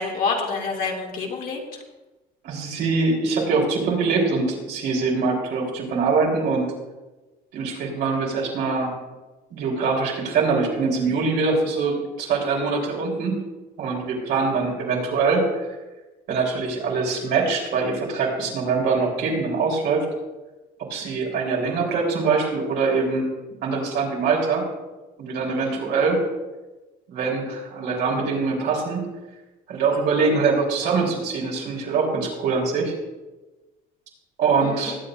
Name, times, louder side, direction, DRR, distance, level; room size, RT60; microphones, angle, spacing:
voice 1, 0.0-1.8 25.6-25.8 34.6-35.0, left 4 dB, 55° left, -1 dB, 2.5 m, -28 dB
voice 2, 2.4-6.7 7.5-9.0 9.5-13.4 13.8-15.7 16.3-20.1 20.8-23.3 23.6-24.6 25.2-26.2 27.1-29.1 29.7-32.9 34.4-35.0, right 4 dB, 80° right, -2 dB, 3.8 m, -23 dB
20.5 x 8.7 x 2.6 m, 1.1 s
cardioid pair, 110°, 17 cm